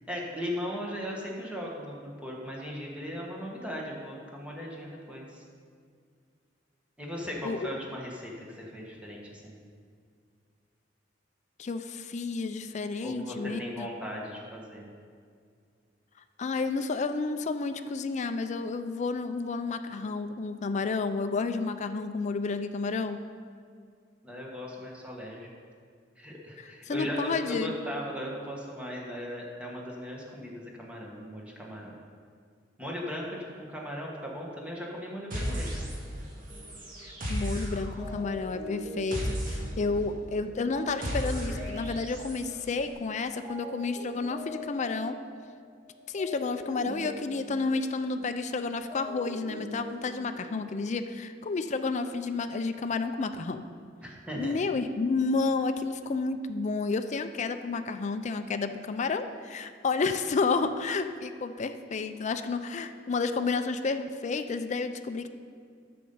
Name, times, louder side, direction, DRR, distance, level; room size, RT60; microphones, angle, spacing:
voice 1, 0.1-5.4 7.0-9.6 13.0-14.8 24.2-25.5 26.2-31.9 32.8-35.9 54.0-54.5, equal, 5° right, -3 dB, 1.5 m, -38 dB
voice 2, 11.6-13.9 16.4-23.2 26.9-27.7 37.3-45.2 46.1-53.6 54.4-65.3, left 4 dB, 40° left, 8 dB, 0.4 m, -31 dB
sound 1, 35.3-36.2 36.5-42.5, equal, 50° right, 2.0 m, -35 dB
sound 2, 36.5-37.5 38.0-43.2 43.4-48.4 48.7-50.9, left 1 dB, 25° right, 2.2 m, -43 dB
9.4 x 6.8 x 5.5 m, 2.1 s
head